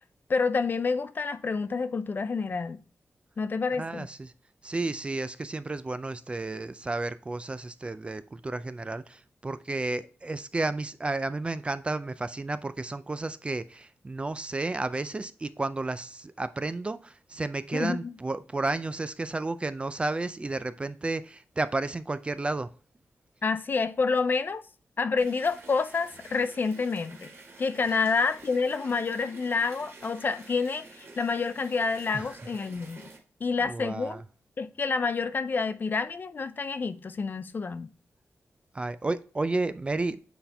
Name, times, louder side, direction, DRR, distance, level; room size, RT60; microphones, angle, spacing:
voice 1, 0.3-2.8 3.4-4.1 17.7-18.1 23.4-24.6 25.0-27.3 27.6-33.0 33.4-34.2 34.6-37.9, left 4 dB, 40° left, 0.4 m, -28 dB
voice 2, 3.8-4.3 4.6-22.7 27.9-28.0 32.1-32.4 33.6-34.2 38.7-40.2, right 2 dB, 20° right, 0.3 m, -32 dB
sound 1, 25.2-33.2, right 3 dB, 50° right, 1.9 m, -49 dB
7.8 x 4.3 x 3.4 m
wide cardioid pair, 165°, 5 cm